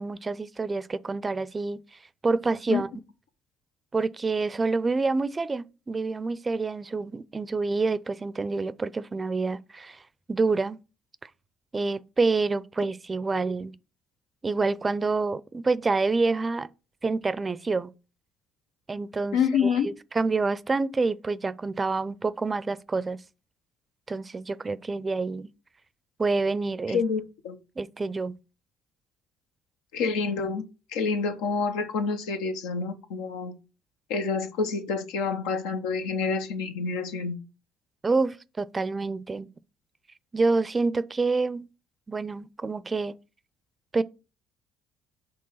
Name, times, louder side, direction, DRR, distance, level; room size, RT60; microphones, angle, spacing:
voice 1, 0.0-1.8 2.2-2.9 3.9-10.0 10.3-10.8 11.7-13.8 14.4-16.7 17.0-17.9 18.9-23.2 24.1-25.5 26.2-27.0 27.8-28.3 38.0-39.5 40.3-41.7 42.1-43.1 43.9-44.0, right 3 dB, 30° right, 0.5 m, -27 dB
voice 2, 19.3-19.9 26.9-27.6 29.9-30.6 30.9-33.6 34.1-37.4, left 5 dB, 85° left, 0.8 m, -27 dB
5.4 x 3.4 x 5.6 m
supercardioid pair, 65°, 0 cm